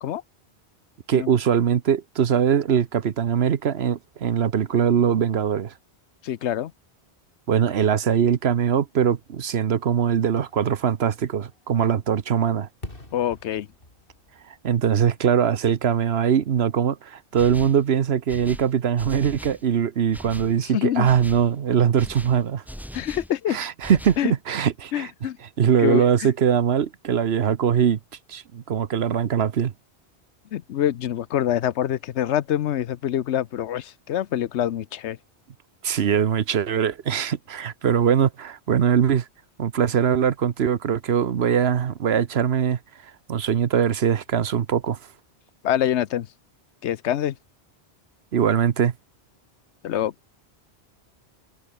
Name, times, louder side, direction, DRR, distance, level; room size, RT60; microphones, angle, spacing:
voice 1, 1.1-5.7 7.5-12.7 14.5-22.6 23.5-25.1 25.6-28.0 28.3-29.7 35.8-39.3 39.6-42.8 43.3-45.0 48.3-48.9, right 8 dB, 70° right, 1.2 m, -22 dB
voice 2, 6.2-6.7 13.1-13.7 20.7-21.1 22.9-23.6 24.2-24.3 24.9-25.4 25.8-26.3 30.5-35.2 45.6-46.3 46.8-47.4 49.8-50.1, left 11 dB, 90° left, 1.0 m, -25 dB
Fireworks, 10.2-16.0 16.4-16.5, left 2 dB, 55° left, 4.6 m, -46 dB
sound 1, 17.4-17.9 18.3-19.7 20.1-20.6 21.0-21.5 22.0-23.3 23.8-24.3, equal, ahead, 2.9 m, -40 dB
omnidirectional pair, 1.1 m